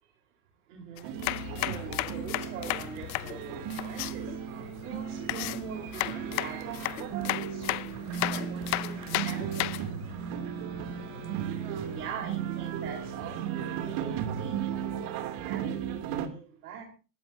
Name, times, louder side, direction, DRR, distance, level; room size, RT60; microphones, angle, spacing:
voice 1, 0.7-4.2 4.6-9.5 11.8-16.8, right 6 dB, 75° right, 1 dB, 4.4 m, -44 dB
sound 1, 1.0-4.1 5.3-9.9, left 21 dB, 40° left, 0.7 m, -33 dB
sound 2, 1.0-16.3, right 10 dB, 50° right, 2.9 m, -35 dB
sound 3, 1.2-14.9, left 7 dB, 85° left, 2.0 m, -46 dB
27.5 x 13.5 x 2.7 m, 0.35 s
hypercardioid pair, 115°, 45 cm